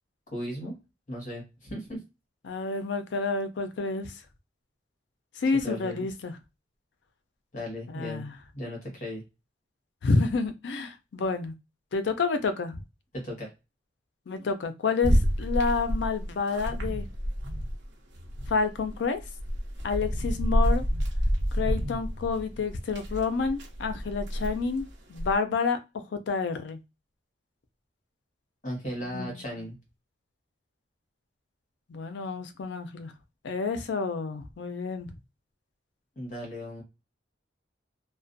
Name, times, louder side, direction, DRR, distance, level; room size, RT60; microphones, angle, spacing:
voice 1, 0.3-0.8 1.1-2.0 5.6-6.0 7.5-8.2 8.5-9.2 13.1-13.5 28.6-29.8 36.2-36.8, equal, 40° left, 1.1 m, -36 dB
voice 2, 2.4-4.1 5.4-6.3 7.9-8.3 10.0-11.5 11.9-12.8 14.3-17.1 18.5-19.2 19.8-20.8 21.5-25.8 26.1-26.8 29.1-29.4 31.9-33.1 33.4-35.1, left 4 dB, 70° left, 0.4 m, -29 dB
sound 1, 15.0-17.8 18.1-25.3, equal, 70° right, 0.7 m, -29 dB
2.4 x 2.1 x 2.5 m
head